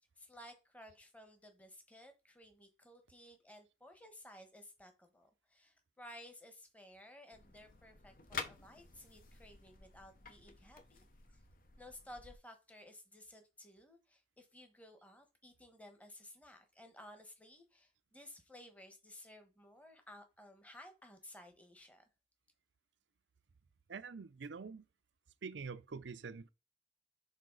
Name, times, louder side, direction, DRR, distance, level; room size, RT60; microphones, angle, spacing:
voice 1, 0.2-11.4 11.8-22.0, left 1 dB, 10° left, 1.2 m, -56 dB
sound 1, 7.3-12.4, left 5 dB, 50° left, 0.9 m, -50 dB
voice 2, 23.9-24.9 25.4-26.5, right 5 dB, 85° right, 0.6 m, -45 dB
6.6 x 4.3 x 3.9 m
head